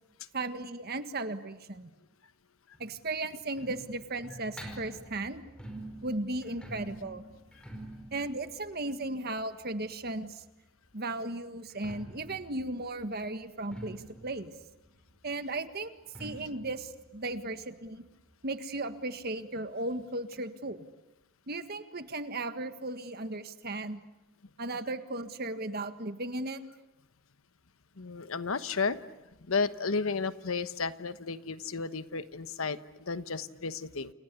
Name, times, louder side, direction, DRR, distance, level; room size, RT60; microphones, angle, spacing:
voice 1, 0.3-1.9 2.8-5.4 6.0-7.2 8.1-10.4 10.9-14.5 15.2-15.9 16.2-18.1 18.4-20.8 21.5-24.0 24.6-26.6, right 2 dB, 50° right, 9 dB, 1.7 m, -36 dB
sound 1, 2.7-10.4 11.6-18.9 19.2-19.3 19.6-19.7 20.3-20.4, right 1 dB, 5° left, 5.0 m, -48 dB
voice 2, 28.0-29.0 29.5-34.1, left 4 dB, 80° left, 12 dB, 1.2 m, -33 dB
29.0 x 28.5 x 6.9 m, 0.95 s
head